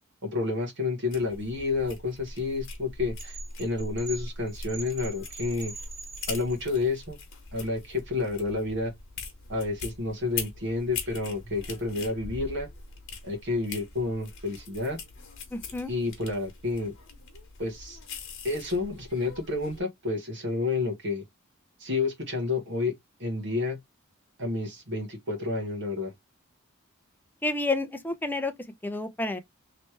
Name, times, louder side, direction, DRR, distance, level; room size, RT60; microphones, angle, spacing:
voice 1, 0.2-5.7 6.3-7.2 7.5-8.9 9.5-12.7 13.2-15.0 15.9-16.9 17.6-18.0 18.4-21.2 21.8-22.9 23.2-23.8 24.4-26.1, left 3 dB, 60° right, 1.3 m, -30 dB
sound 1, 1.1-19.8, left 4 dB, 60° left, 1.2 m, -42 dB
sound 2, 3.2-6.8, right 5 dB, 40° right, 1.8 m, -43 dB
voice 2, 15.5-15.9 27.4-28.5 28.8-29.4, left 2 dB, 10° left, 0.5 m, -29 dB
3.2 x 2.9 x 3.1 m
head